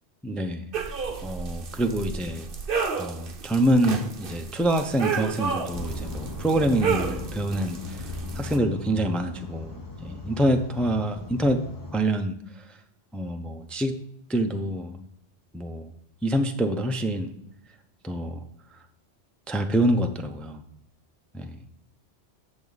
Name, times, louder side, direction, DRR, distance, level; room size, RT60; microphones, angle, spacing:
voice 1, 0.2-0.7 1.2-2.5 3.0-8.1 8.3-11.6 11.9-12.3 13.1-14.0 14.3-15.0 15.5-15.9 16.2-17.3 18.0-18.4 19.5-20.6 21.3-21.5, right 1 dB, ahead, 5 dB, 0.5 m, -26 dB
sound 1, 0.7-8.6, right 6 dB, 50° right, 1.0 m, -32 dB
sound 2, 5.7-12.0, left 2 dB, 20° left, 0.9 m, -37 dB
10.5 x 7.0 x 4.0 m, 0.77 s
omnidirectional pair, 1.2 m